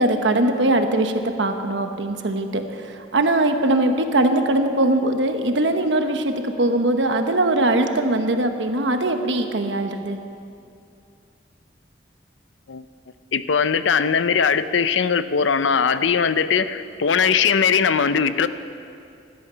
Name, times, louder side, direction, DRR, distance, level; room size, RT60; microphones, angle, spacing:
voice 1, 0.0-10.2, right 2 dB, 75° right, 6 dB, 1.1 m, -21 dB
voice 2, 13.3-18.5, left 6 dB, 85° left, 12 dB, 0.6 m, -20 dB
17.0 x 12.0 x 5.6 m, 2.5 s
head